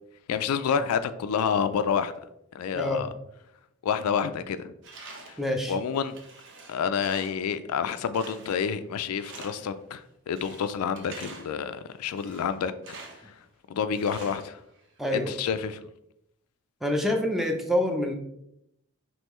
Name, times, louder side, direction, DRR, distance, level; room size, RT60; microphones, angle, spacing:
voice 1, 0.3-2.1 2.5-3.1 3.8-4.7 5.3-5.4 5.7-6.2 6.7-12.7 13.3-13.4 13.7-14.6 15.1-15.9, left 7 dB, 80° left, 11 dB, 0.3 m, -28 dB
voice 2, 2.7-3.1 5.4-5.8 15.0-15.3 16.8-18.1, left 1 dB, ahead, 3 dB, 0.5 m, -26 dB
Tools, 4.8-5.5 5.9-7.5 8.1-8.8 9.2-9.8 10.4-11.6 12.1-13.3 13.9-15.0, right 3 dB, 55° right, 0.8 m, -46 dB
5.4 x 3.1 x 3.0 m, 0.78 s
head